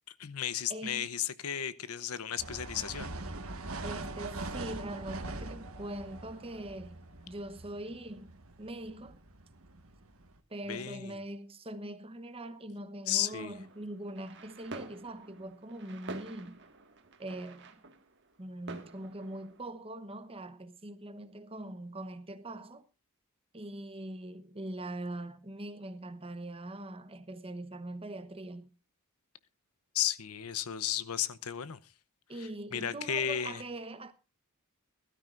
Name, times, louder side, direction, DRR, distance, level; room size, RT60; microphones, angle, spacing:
voice 1, 0.2-3.1 10.7-11.2 13.1-13.5 29.9-31.8 32.4-33.6, left 10 dB, 85° left, 0.8 m, -34 dB
voice 2, 0.7-1.1 3.8-8.3 8.6-9.2 10.5-16.6 17.2-17.8 18.4-22.8 23.5-28.7 32.3-34.1, right 1 dB, 25° right, 1.0 m, -42 dB
sound 1, 2.4-10.4, right 2 dB, 70° right, 1.6 m, -43 dB
sound 2, 13.2-19.7, right 3 dB, 55° right, 1.8 m, -49 dB
21.0 x 12.5 x 2.5 m
head